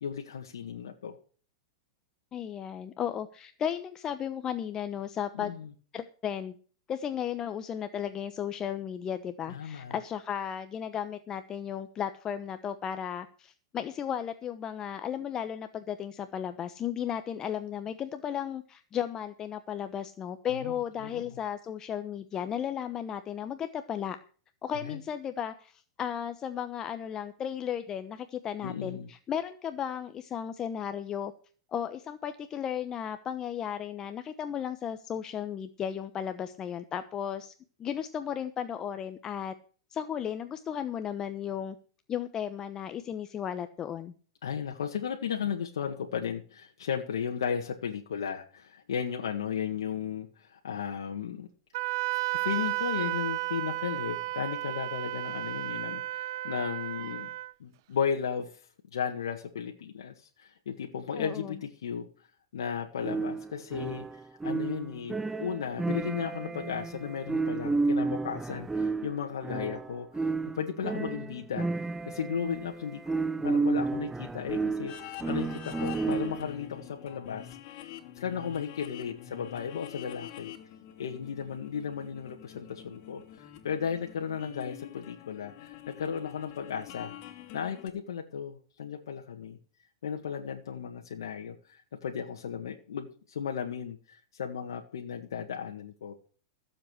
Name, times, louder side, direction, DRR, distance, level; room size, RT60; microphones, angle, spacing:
voice 1, 0.0-1.2 5.3-5.7 9.5-10.0 20.6-21.2 24.8-25.0 28.6-29.1 44.4-51.5 52.3-57.3 57.6-58.5 58.9-62.1 62.5-64.1 64.4-70.3 70.6-71.7 72.1-77.5 78.2-80.5 81.0-87.1 87.5-89.6 90.0-96.1, left 7 dB, 85° left, 3 dB, 1.7 m, -35 dB
voice 2, 2.3-5.5 5.9-6.5 6.9-24.2 24.6-31.3 31.7-37.5 37.8-39.5 39.9-41.8 42.1-44.1 61.2-61.6, left 9 dB, 30° left, 9 dB, 1.0 m, -35 dB
Wind instrument woodwind instrument, 51.7-57.5, right 19 dB, 60° right, 0.6 m, -33 dB
sound 1, 63.0-76.6, right 3 dB, 10° right, 0.5 m, -32 dB
sound 2, 74.9-87.9, left 12 dB, 50° left, 2.6 m, -46 dB
15.0 x 7.6 x 6.5 m, 0.42 s
hypercardioid pair, 120°, 2 cm